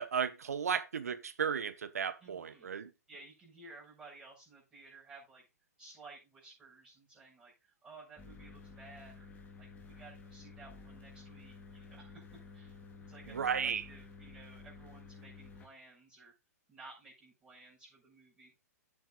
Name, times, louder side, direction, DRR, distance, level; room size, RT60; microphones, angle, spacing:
voice 1, 0.0-2.9 13.3-13.8, right 7 dB, 70° right, 1.2 m, -34 dB
voice 2, 2.2-2.7 3.1-5.4 5.8-9.3 9.6-12.8 13.1-16.3 16.7-18.5, right 3 dB, 15° right, 6.7 m, -55 dB
sound 1, 8.2-15.7, left 4 dB, 15° left, 3.0 m, -52 dB
16.5 x 8.6 x 2.4 m
figure-of-eight pair, 115°, 9 cm